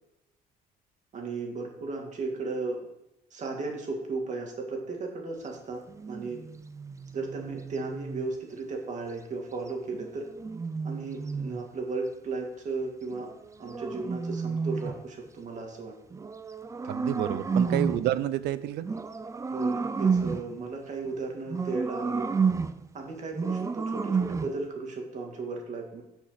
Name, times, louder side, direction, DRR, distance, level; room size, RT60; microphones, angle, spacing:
voice 1, 1.1-2.8 3.3-5.8 6.1-6.4 7.1-10.2 10.8-13.3 13.6-15.9 17.5-17.8 19.5-22.3 22.9-26.0, right 3 dB, 45° right, 1 dB, 2.3 m, -35 dB
sound 1, 5.9-8.3 9.9-11.7 13.1-15.1 16.1-18.1 18.8-20.6 21.5-22.9 23.3-24.6, right 5 dB, 20° right, 0.5 m, -31 dB
voice 2, 16.9-18.9, right 13 dB, 80° right, 15 dB, 0.6 m, -29 dB
6.3 x 6.3 x 5.8 m, 0.87 s
cardioid pair, 110°, 17 cm